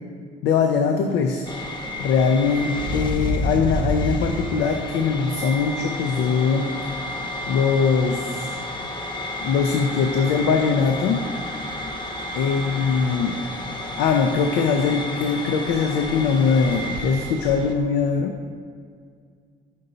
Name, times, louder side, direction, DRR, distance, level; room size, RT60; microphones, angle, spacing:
voice 1, 0.4-1.5 2.0-6.7 7.5-8.6 9.4-11.2 12.3-13.4 14.0-18.3, left 5 dB, 80° left, 4 dB, 0.5 m, -21 dB
sound 1, 1.5-17.7, left 1 dB, 25° left, 0.8 m, -30 dB
5.4 x 5.3 x 3.9 m, 2.1 s
cardioid pair, 110°, 17 cm